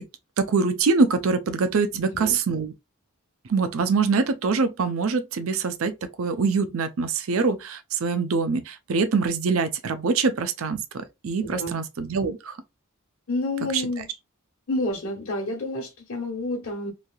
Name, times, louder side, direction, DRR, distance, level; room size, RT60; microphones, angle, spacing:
voice 1, 0.4-2.7 3.5-12.6 13.7-13.8, right 4 dB, 70° right, 0.5 m, -24 dB
voice 2, 1.9-2.4 11.4-11.7 13.3-14.0 14.7-16.9, left 2 dB, 65° left, 1.0 m, -29 dB
3.1 x 2.7 x 2.3 m
head